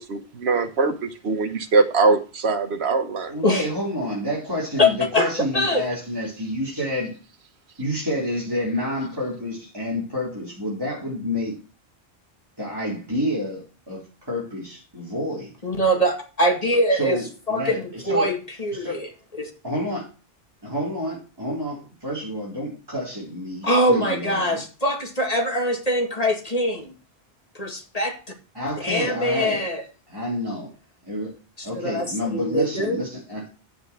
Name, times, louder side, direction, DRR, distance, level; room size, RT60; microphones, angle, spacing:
voice 1, 0.1-3.3, right 4 dB, 80° right, 6 dB, 1.3 m, -22 dB
voice 2, 3.3-7.1 7.8-11.6 12.6-15.5 16.9-18.3 18.7-19.0 19.6-20.0 20.6-24.6 28.5-29.6 30.1-30.7 31.0-31.3 31.6-33.4, left 1 dB, 20° right, -6 dB, 4.3 m, -29 dB
voice 3, 4.8-5.9 15.6-17.2 17.5-19.5 23.6-26.9 27.5-28.2 28.8-29.8 31.6-33.0, equal, 35° left, 2 dB, 2.3 m, -23 dB
9.6 x 8.1 x 4.7 m, 0.35 s
omnidirectional pair, 1.1 m